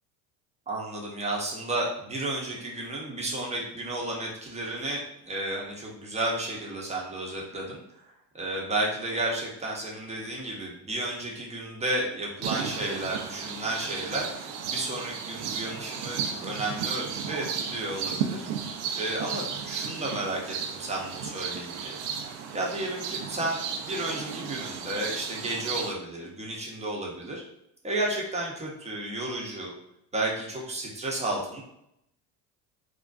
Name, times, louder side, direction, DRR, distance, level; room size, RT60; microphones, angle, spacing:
voice 1, 0.7-7.8 8.3-18.5 19.0-22.0 22.5-27.4 27.8-29.7 30.1-31.6, right 2 dB, 15° right, -2 dB, 0.6 m, -32 dB
sound 1, 12.4-25.9, right 7 dB, 65° right, 0.5 m, -34 dB
2.4 x 2.1 x 2.4 m, 0.80 s
hypercardioid pair, 70°, 50 cm